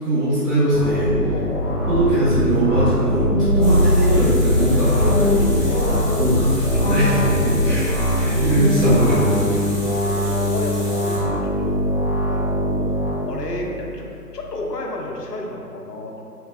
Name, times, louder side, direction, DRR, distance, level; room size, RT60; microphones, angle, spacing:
voice 1, 0.0-1.2 1.9-5.7 6.1-9.6, right 1 dB, 80° right, -10 dB, 1.0 m, -21 dB
sound 1, 0.7-13.1, equal, 35° right, 0.7 m, -21 dB
voice 2, 1.2-1.9 5.6-6.5 7.4-7.8 9.9-11.8 12.3-12.9 13.3-14.1 14.3-16.2, left 2 dB, 80° left, 0 dB, 0.6 m, -31 dB
sound 2, 3.4-14.0, left 2 dB, 65° right, 1.2 m, -26 dB
Water tap faucet, 3.6-11.2, equal, 30° left, 0.6 m, -36 dB
3.7 x 2.2 x 2.3 m, 2.5 s
figure-of-eight pair, 150°, 48 cm